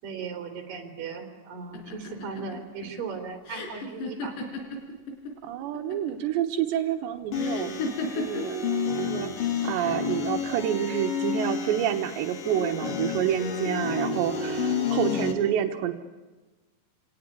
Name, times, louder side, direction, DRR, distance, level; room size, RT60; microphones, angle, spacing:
voice 1, 0.0-4.3, right 5 dB, 55° right, 5 dB, 4.8 m, -37 dB
sound 1, 1.7-5.3 5.6-6.3 7.4-8.6 9.6-10.2, left 3 dB, 80° left, 6.3 m, -34 dB
voice 2, 5.4-7.8 8.2-8.6 9.0-9.3 9.6-15.9, right 10 dB, 90° right, 5 dB, 3.5 m, -28 dB
sound 2, 7.3-15.3, left 5 dB, 55° left, 4.0 m, -30 dB
26.5 x 19.0 x 9.7 m, 1.2 s
omnidirectional pair, 5.0 m